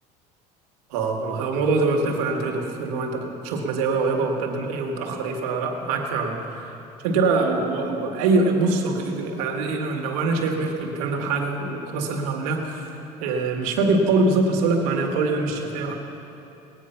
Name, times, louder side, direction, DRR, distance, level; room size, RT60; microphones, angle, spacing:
voice 1, 0.9-16.0, right 3 dB, 90° right, 2 dB, 1.9 m, -24 dB
19.0 x 9.4 x 5.8 m, 2.8 s
supercardioid pair, 110°, 19 cm